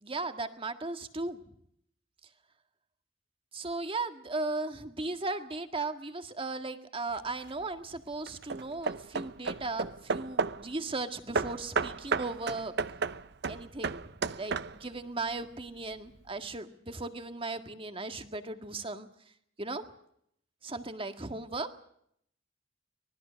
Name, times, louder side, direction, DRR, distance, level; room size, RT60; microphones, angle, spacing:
voice 1, 0.0-1.4 3.5-12.7 13.5-19.1 19.6-19.8 20.6-21.7, right 3 dB, 30° right, 8 dB, 1.8 m, -37 dB
Hammer / Wood, 7.1-7.6 8.3-10.7 11.3-15.0, right 4 dB, 60° right, 0.8 m, -33 dB
24.5 x 20.0 x 6.4 m, 0.71 s
head